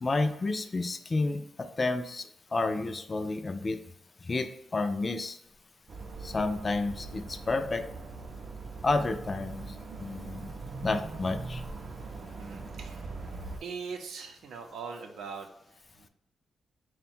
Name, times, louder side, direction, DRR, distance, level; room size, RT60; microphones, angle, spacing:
voice 1, 0.0-3.8 4.2-5.4 6.2-7.8 8.8-10.5 10.8-11.6, left 3 dB, 25° left, 8 dB, 0.3 m, -30 dB
sound 1, 5.9-13.6, right 3 dB, 40° right, 0.4 m, -41 dB
voice 2, 12.4-13.1 13.6-15.5 16.0-16.1, right 5 dB, 85° right, 4 dB, 0.6 m, -41 dB
3.8 x 2.2 x 4.3 m, 0.80 s
wide cardioid pair, 160°, 0 cm